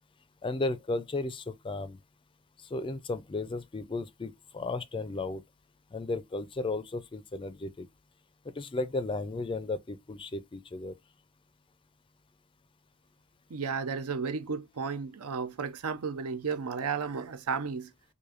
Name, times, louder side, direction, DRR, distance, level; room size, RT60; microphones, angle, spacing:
voice 1, 0.4-2.0 2.7-5.4 5.9-7.9 8.5-10.9, left 2 dB, 25° left, 0.4 m, -34 dB
voice 2, 13.5-17.9, right 5 dB, 85° right, 0.6 m, -33 dB
4.8 x 2.6 x 2.4 m
head